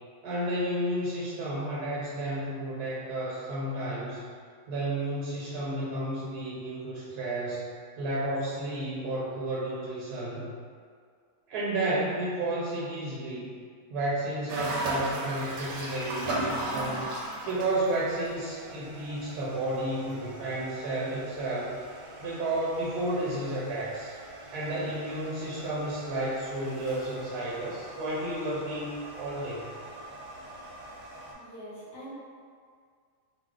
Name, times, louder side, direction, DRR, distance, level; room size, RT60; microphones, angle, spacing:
voice 1, 0.2-4.2 4.7-7.7 8.0-10.5 11.5-13.6 13.9-17.1 17.4-21.7 22.2-24.2 24.5-29.8, right 1 dB, 90° right, -7 dB, 1.2 m, -32 dB
sound 1, 14.5-31.3, right 1 dB, 70° right, 0.9 m, -39 dB
voice 2, 31.3-32.1, equal, 25° left, -11 dB, 1.2 m, -44 dB
2.6 x 2.0 x 3.6 m, 2.1 s
omnidirectional pair, 1.6 m